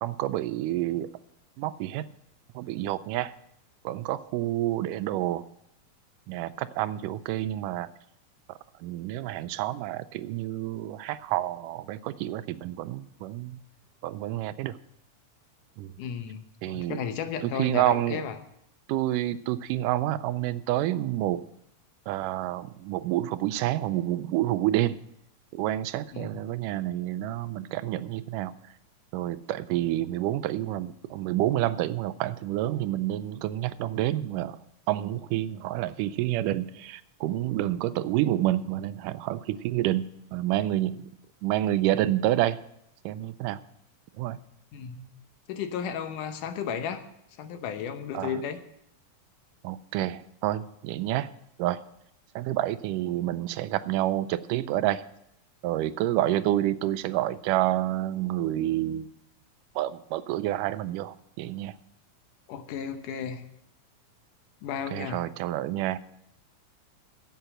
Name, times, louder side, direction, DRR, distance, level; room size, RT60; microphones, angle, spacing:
voice 1, 0.0-1.1 1.6-2.0 2.6-3.3 3.8-5.4 6.3-7.9 8.8-13.6 14.0-14.8 15.8-15.9 16.6-17.0 17.4-18.2 18.9-21.4 22.1-25.0 25.5-28.6 29.1-34.6 34.9-41.1 41.4-42.6 43.1-43.6 44.2-44.4 48.1-48.4 49.6-51.3 51.6-51.8 52.4-55.0 55.6-59.1 59.8-61.8 64.9-66.0, right 14 dB, 85° right, 14 dB, 2.1 m, -28 dB
voice 2, 16.0-18.4 26.1-26.4 44.7-45.1 45.5-47.1 47.4-48.6 62.5-63.4 64.6-65.3, left 7 dB, 75° left, 8 dB, 2.4 m, -34 dB
10.5 x 8.0 x 7.6 m, 0.76 s
omnidirectional pair, 3.7 m